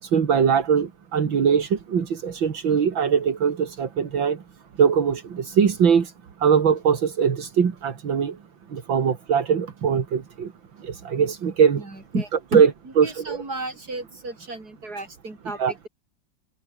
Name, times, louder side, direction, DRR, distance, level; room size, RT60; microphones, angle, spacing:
voice 1, 0.0-4.4 4.8-6.1 6.4-8.4 8.7-10.5 10.8-11.8 12.5-12.7 13.0-13.4 15.6-15.7, right 7 dB, 75° right, 2.8 m, -21 dB
voice 2, 11.8-12.6 13.0-15.9, right 2 dB, 50° right, 6.5 m, -32 dB
omnidirectional pair, 2.1 m